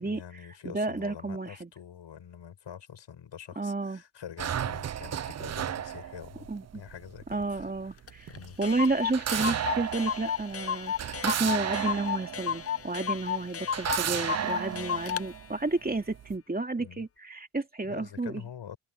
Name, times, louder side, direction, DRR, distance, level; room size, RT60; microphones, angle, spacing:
voice 1, 0.0-6.5 6.7-8.6 14.7-15.1 16.8-17.1 17.8-18.8, left 8 dB, 65° left, 5.9 m, -46 dB
voice 2, 0.6-1.7 3.6-4.0 6.5-6.8 7.3-8.3 8.6-10.9 11.2-18.4, right 3 dB, 20° right, 2.9 m, -31 dB
sound 1, 4.4-13.2 13.7-16.4, right 10 dB, 35° right, 0.5 m, -34 dB
Clock, 8.1-8.2 8.3-8.4 8.6-15.3, left 8 dB, 30° left, 0.6 m, -33 dB
cardioid pair, 90°, 47 cm